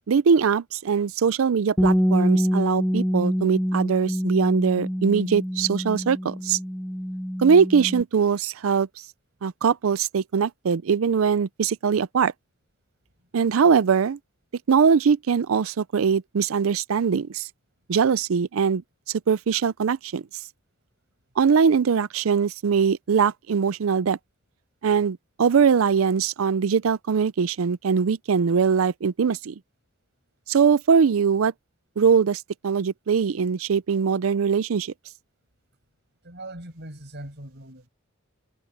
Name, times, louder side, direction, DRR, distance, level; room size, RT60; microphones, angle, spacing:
voice 1, 0.1-6.6 7.4-8.9 9.4-12.3 13.3-14.2 14.7-17.5 17.9-18.8 19.1-20.2 21.4-24.2 24.8-29.5 30.5-31.5 32.0-34.9, right 6 dB, 85° right, 0.5 m, -21 dB
Bass guitar, 1.8-8.0, equal, ahead, 0.4 m, -25 dB
voice 2, 36.2-37.9, right 1 dB, 55° right, 6.8 m, -40 dB
head